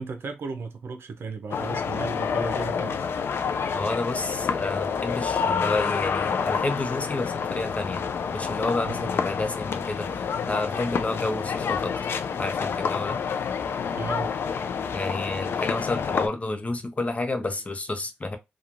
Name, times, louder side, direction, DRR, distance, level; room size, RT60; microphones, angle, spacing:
voice 1, 0.0-3.1 8.8-9.1 14.0-14.3, right 4 dB, 75° right, 0.5 m, -35 dB
sound 1, 1.5-16.3, left 6 dB, 80° left, 0.3 m, -28 dB
voice 2, 3.7-11.9 12.4-13.2 14.9-18.4, left 2 dB, 35° left, 0.7 m, -30 dB
3.0 x 2.3 x 2.5 m
cardioid pair, 65°, 4 cm